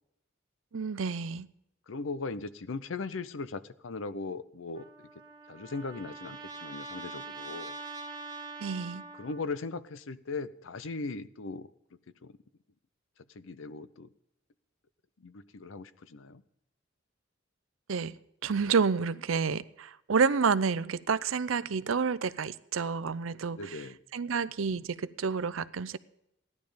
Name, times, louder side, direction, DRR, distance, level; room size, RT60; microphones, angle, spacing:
voice 1, 0.7-1.5 8.6-9.0 17.9-18.1 18.4-23.8 24.1-26.0, right 5 dB, 80° right, 16 dB, 0.6 m, -29 dB
voice 2, 1.9-4.9 5.5-7.8 9.1-11.7 12.2-12.4 13.3-14.1 15.2-16.4 23.5-24.0, left 3 dB, 75° left, 15 dB, 0.6 m, -38 dB
Trumpet, 4.8-9.6, right 3 dB, 20° right, 1.0 m, -43 dB
16.0 x 11.0 x 5.1 m, 0.81 s
head